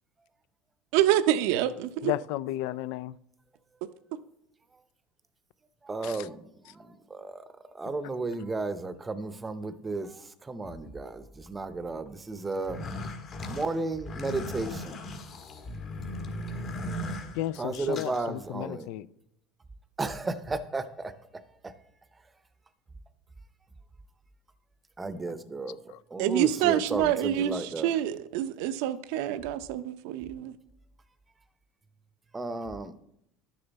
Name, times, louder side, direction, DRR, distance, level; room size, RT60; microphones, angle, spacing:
voice 1, 0.9-2.1 26.2-30.5, right 12 dB, 70° right, 0.6 m, -27 dB
voice 2, 2.0-3.2 6.0-6.3 17.3-19.1 25.9-26.0, left 14 dB, 70° left, 0.4 m, -33 dB
voice 3, 5.9-6.5 7.1-7.4 7.7-10.1 10.5-12.8 13.5-15.0 17.6-18.9 20.0-21.1 21.6-21.7 25.0-25.8 26.1-27.9 32.3-32.9, right 3 dB, 15° right, 0.7 m, -33 dB
sound 1, 12.5-18.2, left 1 dB, 40° left, 1.5 m, -37 dB
11.0 x 6.9 x 4.1 m
supercardioid pair, 120°, 0 cm